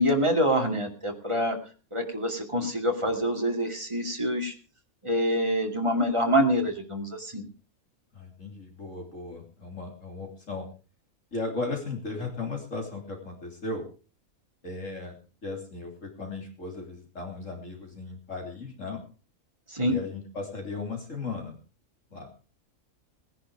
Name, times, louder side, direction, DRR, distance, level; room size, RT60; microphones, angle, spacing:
voice 1, 0.0-1.6 1.9-4.5 5.0-7.4 19.7-20.0, equal, 20° right, 2 dB, 2.7 m, -26 dB
voice 2, 8.1-10.7 11.3-13.9 14.6-15.2 15.4-19.0 19.9-21.6 22.1-22.3, left 3 dB, 60° left, 2 dB, 3.6 m, -36 dB
18.5 x 10.5 x 4.9 m, 0.37 s
omnidirectional pair, 1.5 m